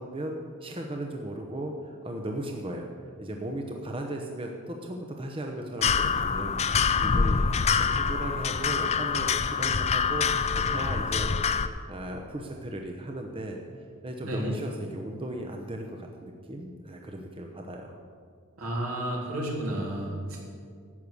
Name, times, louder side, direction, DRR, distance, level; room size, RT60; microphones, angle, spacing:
voice 1, 0.0-2.9 3.2-18.0, right 1 dB, 25° right, 2 dB, 0.9 m, -37 dB
sound 1, 5.8-11.7, left 5 dB, 30° left, 0.5 m, -25 dB
voice 2, 14.2-14.5 18.6-20.6, right 1 dB, 75° right, -3 dB, 3.5 m, -32 dB
12.5 x 7.9 x 8.5 m, 2.1 s
head